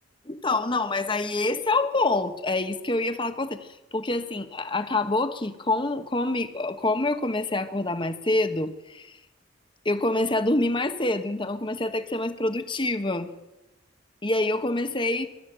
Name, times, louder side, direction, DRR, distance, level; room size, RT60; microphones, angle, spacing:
voice 1, 0.2-9.2 9.8-13.3 14.2-15.3, left 2 dB, 25° left, 9 dB, 1.3 m, -26 dB
23.0 x 13.0 x 8.9 m, 1.0 s
head